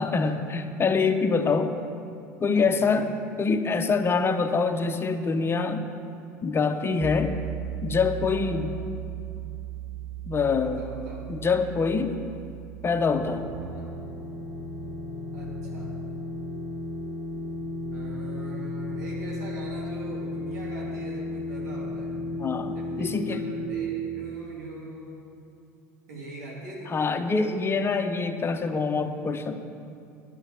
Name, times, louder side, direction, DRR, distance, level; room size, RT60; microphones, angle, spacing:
voice 1, 0.0-1.8 2.4-3.1 3.4-5.9 6.4-7.4 7.8-8.8 10.3-10.8 11.3-12.2 12.8-13.5 22.3-23.4 26.9-29.6, left 4 dB, 25° left, 7 dB, 0.9 m, -25 dB
voice 2, 2.5-3.1 8.3-8.6 10.5-11.3 13.6-13.9 15.3-15.9 17.9-22.2 22.7-25.4 26.1-27.1, right 2 dB, 90° right, -4 dB, 3.2 m, -42 dB
sound 1, 7.0-13.7, right 11 dB, ahead, 1.0 m, -37 dB
sound 2, 13.2-23.7, left 2 dB, 75° right, 2.5 m, -34 dB
11.0 x 8.4 x 7.5 m, 2.5 s
hypercardioid pair, 85°, 9 cm